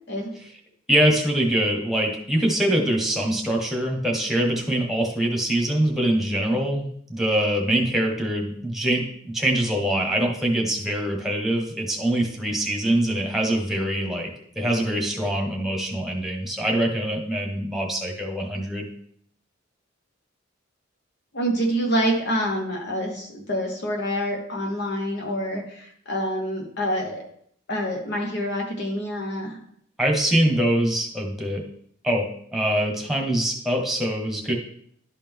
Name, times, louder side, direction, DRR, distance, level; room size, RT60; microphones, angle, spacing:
voice 1, 0.9-14.3 14.5-18.9 30.0-31.6 32.0-32.2 32.5-34.5, right 1 dB, ahead, 0 dB, 1.3 m, -24 dB
voice 2, 21.3-27.2 27.7-29.6, equal, 60° left, 1 dB, 1.2 m, -27 dB
11.5 x 4.2 x 3.6 m, 0.65 s
head